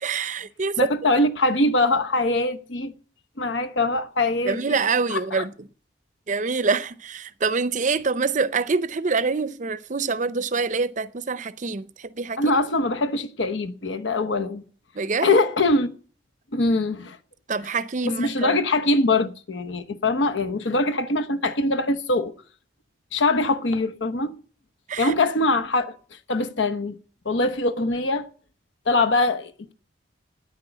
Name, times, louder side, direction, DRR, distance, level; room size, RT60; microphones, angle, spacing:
voice 1, 0.0-0.8 4.4-5.5 6.3-12.4 14.9-15.4 17.5-18.6 24.9-25.1, right 4 dB, 40° right, 0.6 m, -25 dB
voice 2, 0.8-2.9 3.4-4.8 5.1-5.4 12.4-14.6 15.2-15.9 16.5-17.2 18.0-22.3 23.1-24.4 25.0-25.9 26.3-27.0 27.2-28.3 28.9-29.7, left 2 dB, 75° left, 0.9 m, -23 dB
9.7 x 9.3 x 8.1 m
head